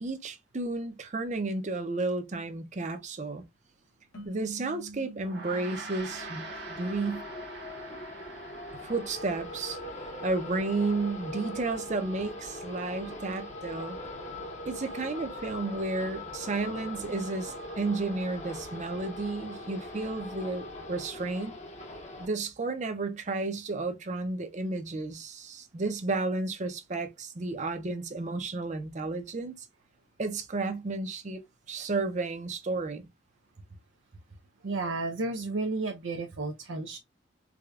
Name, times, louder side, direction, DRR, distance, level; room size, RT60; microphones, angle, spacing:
voice 1, 0.0-3.4 4.2-7.3 8.8-9.8 10.2-14.0 14.6-21.5 22.2-29.7 30.2-33.0, right 3 dB, 40° right, 0.6 m, -32 dB
sound 1, 4.1-7.5, right 2 dB, 90° left, 1.2 m, -48 dB
Gong, 5.2-14.8, right 3 dB, 60° right, 1.0 m, -47 dB
sound 2, 6.0-22.2, left 1 dB, 35° left, 0.8 m, -41 dB
voice 2, 34.6-37.0, right 3 dB, 85° right, 0.6 m, -32 dB
4.8 x 2.2 x 2.3 m
head